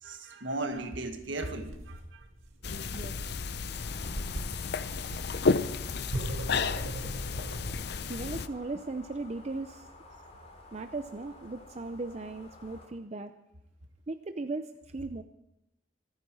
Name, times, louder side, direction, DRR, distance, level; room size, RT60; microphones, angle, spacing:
voice 1, 0.0-2.3, right 2 dB, 65° right, 6 dB, 1.8 m, -36 dB
sound 1, 0.7-7.8, right 1 dB, 90° right, 2.1 m, -40 dB
sound 2, 2.6-8.5, left 4 dB, 55° left, 0.6 m, -32 dB
sound 3, 3.7-12.9, left 2 dB, 35° left, 3.0 m, -52 dB
voice 2, 8.1-9.9 10.7-13.3 14.1-15.2, right 3 dB, 35° right, 8 dB, 0.5 m, -37 dB
26.0 x 9.6 x 4.7 m, 0.91 s
head